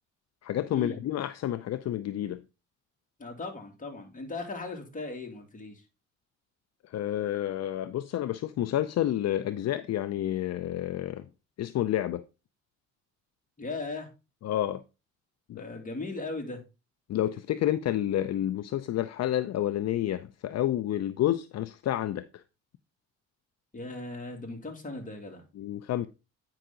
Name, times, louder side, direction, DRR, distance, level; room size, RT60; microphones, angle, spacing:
voice 1, 0.4-2.4 6.8-11.3 11.6-12.2 14.4-14.8 15.5-15.6 17.1-22.4 25.6-26.1, left 12 dB, 60° left, 0.5 m, -29 dB
voice 2, 3.2-5.8 13.6-14.1 15.5-16.6 23.7-25.4, left 3 dB, 25° left, 2.4 m, -38 dB
9.0 x 5.7 x 3.8 m
cardioid pair, 90°, 30 cm